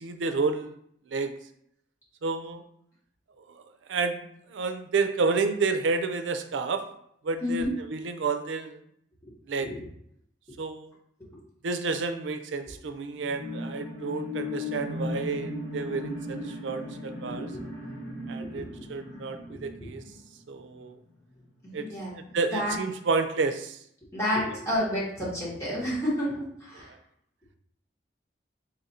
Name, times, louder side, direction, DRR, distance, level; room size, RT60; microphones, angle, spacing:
voice 1, 0.0-0.8 1.1-1.3 2.2-2.6 3.5-3.6 3.9-4.2 4.5-6.8 7.2-8.8 9.5-9.7 10.6-10.9 11.6-17.5 18.3-20.0 20.5-21.0 21.7-21.9 22.1-23.8 26.8-27.0, right 4 dB, 90° right, 8 dB, 0.4 m, -30 dB
voice 2, 7.4-7.7 9.6-9.8 17.3-17.6 21.6-22.1 22.5-22.8 24.1-26.9, left 1 dB, 15° left, -7 dB, 1.4 m, -30 dB
sound 1, 13.2-21.0 21.4-21.5, left 1 dB, 80° left, 1.4 m, -37 dB
4.0 x 2.6 x 4.2 m, 0.71 s
head